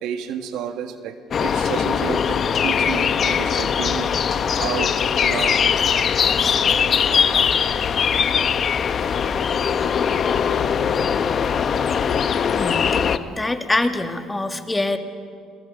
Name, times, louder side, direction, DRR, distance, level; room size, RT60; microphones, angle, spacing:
voice 1, 0.0-4.1 4.6-5.6 8.9-9.6 12.1-12.2, right 8 dB, 80° right, 8 dB, 1.6 m, -31 dB
sound 1, 1.3-13.2, left 7 dB, 45° left, 1.0 m, -21 dB
voice 2, 12.5-12.9 13.3-15.0, left 2 dB, 15° left, 7 dB, 1.7 m, -24 dB
29.5 x 22.0 x 5.3 m, 2.2 s
cardioid pair, 100°, 0 cm